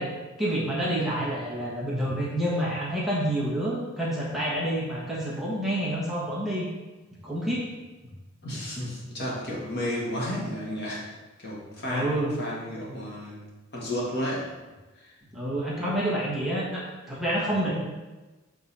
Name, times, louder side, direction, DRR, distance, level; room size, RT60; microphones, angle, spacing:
voice 1, 0.0-6.7 7.2-7.7 8.5-8.6 11.8-12.3 15.3-17.8, right 1 dB, ahead, -7 dB, 1.3 m, -28 dB
voice 2, 8.4-11.1 11.4-13.4 13.7-14.5 15.0-15.1, left 1 dB, 55° left, -4 dB, 1.7 m, -32 dB
6.8 x 3.7 x 4.2 m, 1.2 s
head